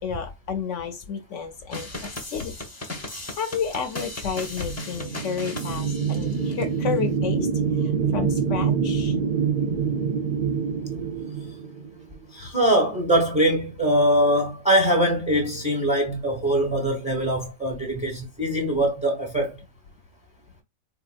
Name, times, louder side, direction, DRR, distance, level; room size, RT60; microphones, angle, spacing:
voice 1, 0.0-2.5 3.1-7.5 7.7-9.2, left 6 dB, 70° left, 0.9 m, -31 dB
sound 1, 1.7-6.6, left 2 dB, 15° left, 0.6 m, -37 dB
sound 2, 4.5-12.2, right 6 dB, 55° right, 0.6 m, -26 dB
voice 2, 12.3-19.6, right 1 dB, 5° right, 0.9 m, -22 dB
4.0 x 2.8 x 2.4 m
omnidirectional pair, 1.4 m